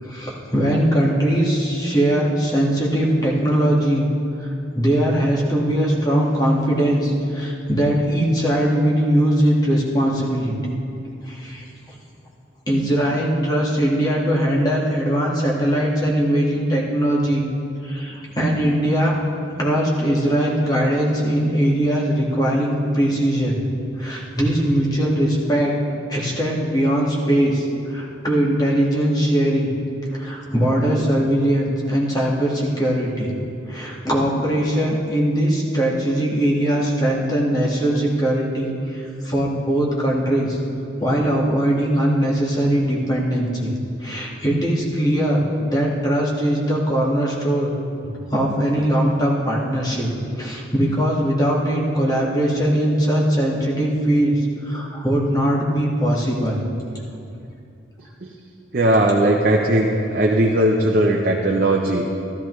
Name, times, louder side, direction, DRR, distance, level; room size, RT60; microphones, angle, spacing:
voice 1, 0.0-4.1 4.4-10.5 11.2-12.0 12.7-17.5 17.8-19.2 19.6-23.6 24.0-25.7 26.1-29.7 30.1-33.3 33.7-40.6 41.0-43.7 44.0-47.7 48.0-50.1 50.4-56.6, right 1 dB, 20° left, -4 dB, 1.7 m, -20 dB
voice 2, 58.7-62.0, right 1 dB, 45° right, 0 dB, 0.7 m, -18 dB
13.5 x 13.0 x 3.2 m, 2.6 s
head